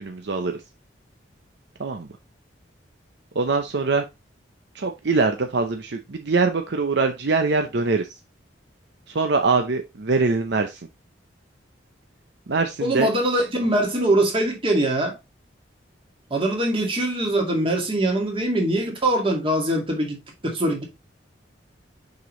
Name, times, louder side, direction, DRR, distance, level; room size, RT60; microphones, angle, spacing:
voice 1, 0.0-0.6 1.8-2.1 3.4-4.0 4.8-8.1 9.1-10.8 12.5-13.1, right 4 dB, 65° right, 0.7 m, -23 dB
voice 2, 12.8-15.2 16.3-20.8, right 1 dB, 30° right, 2.1 m, -22 dB
6.5 x 5.0 x 3.1 m
head